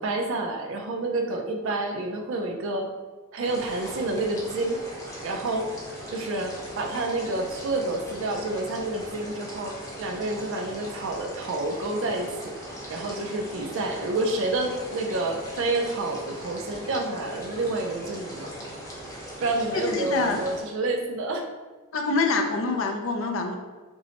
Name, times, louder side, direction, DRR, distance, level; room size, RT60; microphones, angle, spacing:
voice 1, 0.0-2.9 3.3-4.8 5.2-5.7 6.1-12.6 12.9-18.7 19.4-21.5, right 2 dB, 65° right, 3 dB, 0.4 m, -29 dB
sound 1, 3.4-20.6, equal, 15° left, 0.8 m, -39 dB
voice 2, 19.7-20.4 21.9-23.5, left 3 dB, 65° left, 4 dB, 0.5 m, -25 dB
5.2 x 2.1 x 2.9 m, 1.3 s
head